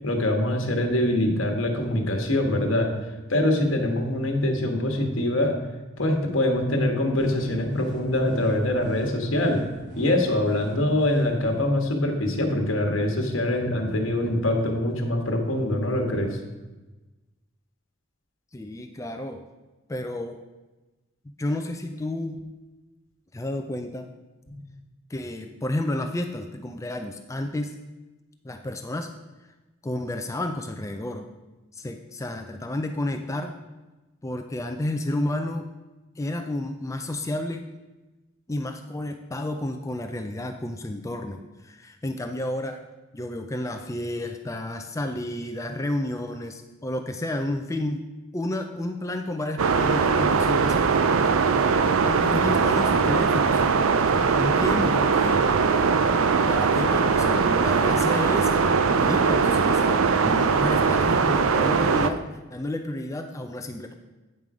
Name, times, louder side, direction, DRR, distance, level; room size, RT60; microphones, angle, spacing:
voice 1, 0.0-2.9 3.3-5.6 6.0-9.6 9.9-16.4 24.5-24.6, left 1 dB, 70° left, 3 dB, 1.4 m, -24 dB
sound 1, 7.2-11.6, right 2 dB, 55° right, 2.0 m, -45 dB
voice 2, 18.5-19.4 19.9-20.4 21.4-22.4 23.3-24.1 25.1-27.8 28.4-29.1 29.8-31.3 31.7-33.6 34.2-35.7 36.2-37.7 38.5-42.8 43.1-48.0 48.3-51.3 52.0-53.6 54.1-55.4 56.5-58.5 59.0-63.9, left 1 dB, 15° left, 6 dB, 0.4 m, -31 dB
sound 2, 49.6-62.1, right 5 dB, 80° right, 0.5 m, -21 dB
9.0 x 5.5 x 4.8 m, 1.1 s
head